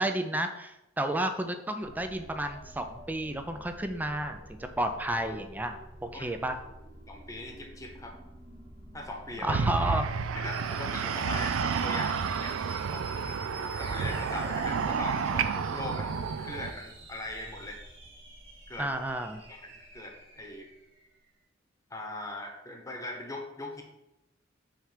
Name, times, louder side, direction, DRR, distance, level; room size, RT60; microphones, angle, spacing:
voice 1, 0.0-6.6 9.4-10.1 18.8-19.4, right 1 dB, 10° right, 6 dB, 0.4 m, -32 dB
sound 1, 1.8-21.1, right 1 dB, 65° right, 1.8 m, -49 dB
voice 2, 7.1-8.1 8.9-9.6 10.3-12.5 12.9-17.8 18.7-18.9 19.5-20.7 21.9-23.8, left 1 dB, 15° left, 2 dB, 1.0 m, -40 dB
sound 2, 9.5-16.7, right 6 dB, 85° right, 0.4 m, -30 dB
6.3 x 3.3 x 5.0 m, 0.91 s
head